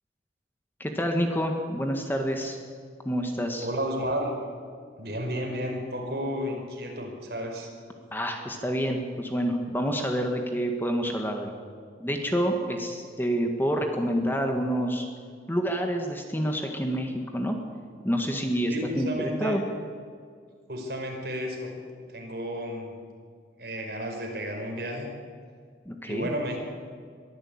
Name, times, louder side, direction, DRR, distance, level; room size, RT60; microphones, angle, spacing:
voice 1, 0.8-2.6 3.1-3.7 8.1-11.5 12.0-15.1 15.5-17.6 18.0-19.6 25.9-26.3, equal, 10° left, 3 dB, 1.7 m, -28 dB
voice 2, 3.6-4.4 5.0-7.7 18.7-19.6 20.7-21.7 22.0-22.9 23.6-25.1 26.0-26.6, equal, 60° right, 1 dB, 5.2 m, -32 dB
23.0 x 14.0 x 8.8 m, 2.1 s
head